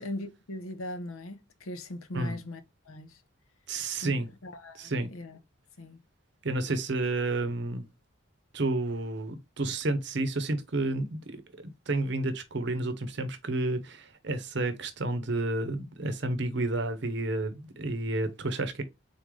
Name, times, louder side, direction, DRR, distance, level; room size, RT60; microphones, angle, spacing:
voice 1, 0.0-2.6 2.9-3.2 4.0-4.1 4.4-5.4 5.8-6.0, left 1 dB, 85° left, 0.8 m, -39 dB
voice 2, 3.7-4.3 4.7-5.1 6.4-7.9 8.5-18.8, right 2 dB, 55° right, 0.7 m, -31 dB
3.9 x 3.7 x 3.2 m
head